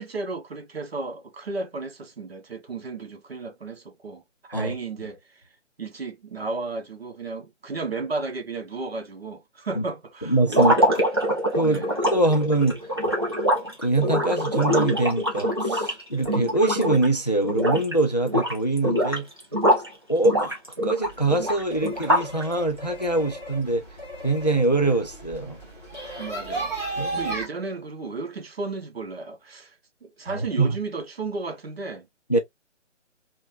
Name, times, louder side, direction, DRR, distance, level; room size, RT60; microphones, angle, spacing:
voice 1, 0.0-5.4 5.8-10.9 11.6-11.9 12.2-12.4 26.2-29.7 30.0-32.4, right 3 dB, 55° right, 0.9 m, -34 dB
voice 2, 10.3-10.7 11.5-11.8 12.1-12.8 13.8-19.3 20.1-20.6 20.8-23.8 24.2-25.6 27.0-27.3 30.3-30.7 32.3-32.4, right 2 dB, 35° left, 0.4 m, -23 dB
sound 1, 10.5-17.1 17.4-17.9 18.2-19.9 20.2-22.4, equal, 20° right, 0.5 m, -24 dB
sound 2, 21.0-27.4, right 2 dB, 5° right, 1.0 m, -35 dB
3.2 x 2.2 x 2.6 m
figure-of-eight pair, 150°, 37 cm